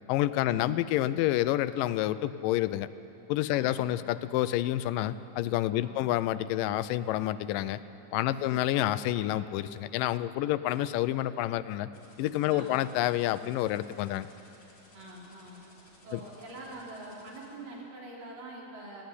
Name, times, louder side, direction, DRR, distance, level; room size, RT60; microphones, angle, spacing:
voice 1, 0.1-2.9 3.3-7.8 8.1-11.9 12.2-14.3 16.1-16.2, left 14 dB, 85° left, 14 dB, 2.2 m, -28 dB
voice 2, 3.5-4.1 5.7-6.1 8.2-8.6 12.5-12.9 14.9-15.6 16.0-19.0, right 1 dB, 80° right, -4 dB, 5.5 m, -45 dB
sound 1, 11.9-17.5, left 2 dB, 70° left, 7.2 m, -58 dB
18.5 x 16.0 x 9.6 m, 2.8 s
omnidirectional pair, 3.8 m